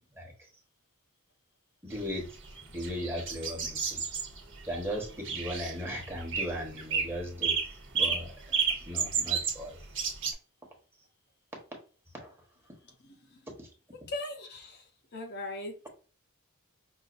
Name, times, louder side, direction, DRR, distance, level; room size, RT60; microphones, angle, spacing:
voice 1, 1.8-2.3 2.7-4.0 4.7-8.6 8.9-9.8 12.1-12.3 13.6-13.7, equal, 10° right, 1.1 m, -37 dB
sound 1, 2.0-10.3, right 6 dB, 60° right, 1.1 m, -31 dB
voice 2, 12.8-13.4 14.1-15.9, left 2 dB, 50° left, 0.7 m, -40 dB
5.5 x 2.5 x 2.5 m
head